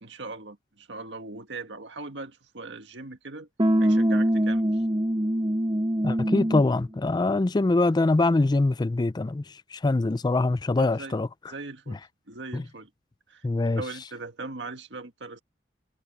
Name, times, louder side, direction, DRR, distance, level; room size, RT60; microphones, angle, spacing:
voice 1, 0.0-3.5 3.8-4.8 10.8-11.2 11.5-12.0 12.3-12.9 13.3-13.4 13.8-15.4, right 3 dB, 90° right, 1.8 m, -39 dB
sound 1, 3.6-6.8, right 1 dB, 25° right, 1.4 m, -23 dB
voice 2, 6.0-11.3 11.9-12.0 12.5-12.6 13.4-13.8, left 2 dB, 25° left, 0.4 m, -24 dB
head